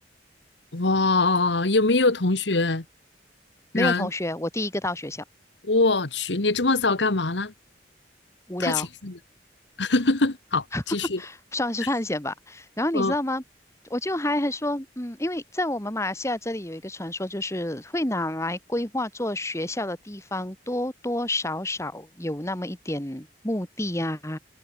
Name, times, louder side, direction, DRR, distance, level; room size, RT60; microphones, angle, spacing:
voice 1, 0.7-2.8 3.7-4.1 5.6-7.5 8.6-9.1 9.8-11.2 12.9-13.1, left 3 dB, 80° left, 1.7 m, -23 dB
voice 2, 3.7-5.2 8.5-8.9 10.7-10.8 11.2-13.4 13.9-24.4, left 1 dB, 15° left, 2.5 m, -29 dB
head